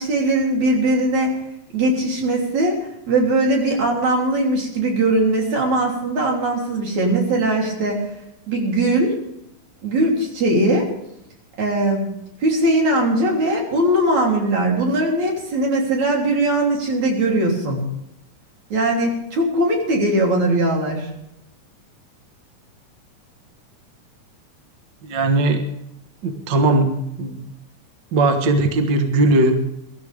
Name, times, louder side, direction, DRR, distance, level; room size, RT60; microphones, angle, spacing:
voice 1, 0.0-1.4 1.7-8.0 8.5-9.2 9.8-10.9 11.6-12.2 12.4-17.9 18.7-21.1, right 1 dB, 70° right, -1 dB, 4.8 m, -20 dB
voice 2, 25.0-25.6 26.2-26.9 27.2-27.4 28.1-29.6, right 2 dB, 45° right, 5 dB, 1.7 m, -18 dB
23.0 x 13.0 x 3.6 m, 0.79 s
omnidirectional pair, 3.4 m